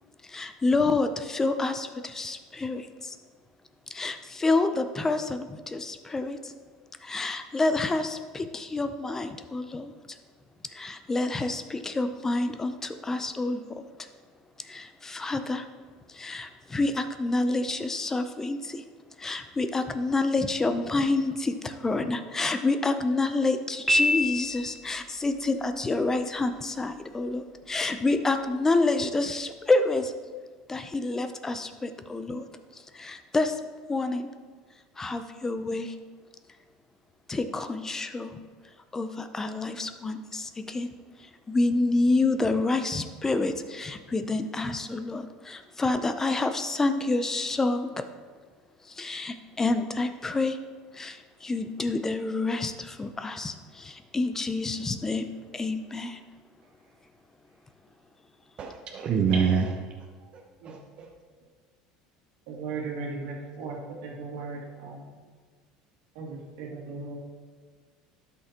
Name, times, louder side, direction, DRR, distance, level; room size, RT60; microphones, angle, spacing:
voice 1, 0.3-3.2 3.9-6.5 7.0-10.2 10.7-13.8 14.6-15.7 16.1-18.8 19.2-30.1 30.7-32.5 32.9-33.6 33.9-34.3 35.0-35.9 37.3-38.4 38.9-40.9 41.5-48.0 48.9-50.6 50.9-55.2 55.5-56.2, left 3 dB, 20° left, 9 dB, 0.5 m, -28 dB
Piano, 23.9-25.0, left 1 dB, 5° right, 1.9 m, -25 dB
voice 2, 58.6-59.7 60.3-61.1, right 6 dB, 45° right, 1 dB, 0.8 m, -27 dB
voice 3, 62.5-65.0 66.2-67.2, right 4 dB, 75° right, -2 dB, 2.1 m, -37 dB
12.0 x 5.6 x 2.9 m, 1.5 s
supercardioid pair, 95°, 2 cm